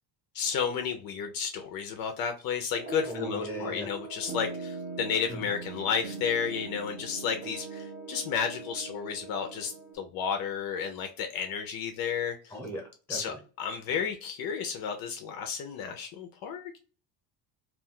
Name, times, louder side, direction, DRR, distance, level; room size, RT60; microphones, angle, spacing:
voice 1, 0.3-12.5 13.1-16.8, left 7 dB, 55° left, 0.5 m, -32 dB
sound 1, 2.7-10.0, right 3 dB, 25° right, 0.8 m, -41 dB
voice 2, 3.1-3.9 5.3-5.5 12.5-13.4, right 1 dB, 5° left, 0.8 m, -38 dB
2.4 x 2.2 x 3.6 m
cardioid pair, 160°, 42 cm